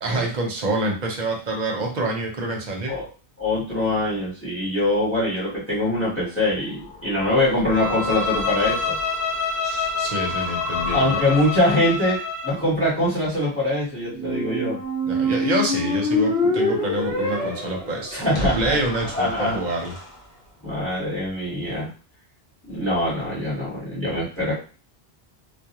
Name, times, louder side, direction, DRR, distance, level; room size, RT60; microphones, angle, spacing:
voice 1, 0.0-3.0 9.6-11.2 15.0-19.9, right 2 dB, 50° right, 0 dB, 0.7 m, -27 dB
voice 2, 3.4-9.0 10.9-14.8 18.1-18.8 19.1-19.6 20.6-21.9 22.7-24.5, left 1 dB, 15° left, -7 dB, 1.1 m, -23 dB
sound 1, 6.2-12.0, left 5 dB, 50° left, 0.5 m, -35 dB
Bowed string instrument, 7.7-12.6, left 4 dB, 10° right, 0.5 m, -27 dB
Squeak, 14.1-20.0, left 1 dB, 70° left, 0.9 m, -26 dB
2.3 x 2.1 x 2.8 m, 0.36 s
omnidirectional pair, 1.1 m